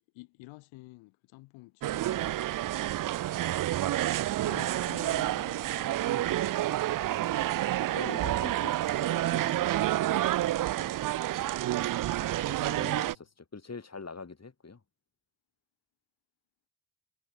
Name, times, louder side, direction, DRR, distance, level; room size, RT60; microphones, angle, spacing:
voice 1, 0.1-2.4 4.4-6.7 12.8-13.2, left 23 dB, 80° left, 3.0 m, -50 dB
sound 1, 1.8-13.2, right 14 dB, 45° right, 0.6 m, -29 dB
voice 2, 7.9-10.3 10.8-11.0 12.5-14.8, left 4 dB, 35° left, 5.8 m, -45 dB
hypercardioid pair, 40°, 47 cm